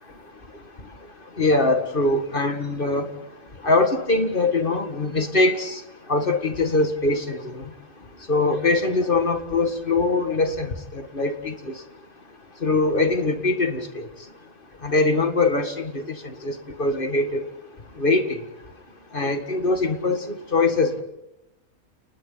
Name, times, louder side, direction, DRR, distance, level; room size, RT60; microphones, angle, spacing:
voice 1, 1.4-3.1 3.6-5.8 6.1-7.7 8.3-11.7 12.6-14.1 14.8-17.5 18.0-18.4 19.1-21.0, left 3 dB, 40° left, 7 dB, 2.1 m, -22 dB
30.0 x 29.5 x 4.0 m, 0.89 s
omnidirectional pair, 1.5 m